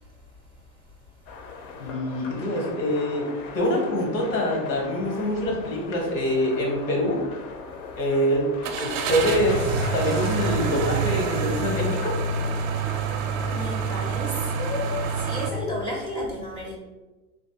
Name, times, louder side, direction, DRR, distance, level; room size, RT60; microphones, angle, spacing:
sound 1, 1.3-12.1, left 4 dB, 55° left, 0.6 m, -39 dB
voice 1, 1.8-3.3 3.5-7.2 7.9-8.5 8.8-12.2, equal, 85° left, -1 dB, 1.4 m, -25 dB
sound 2, 5.4-5.6 6.0-6.1 8.6-15.5, right 4 dB, 55° right, 0.5 m, -27 dB
voice 2, 13.5-16.8, left 1 dB, 10° left, -3 dB, 0.5 m, -32 dB
3.2 x 2.6 x 2.8 m, 1.1 s
hypercardioid pair, 105°, 47 cm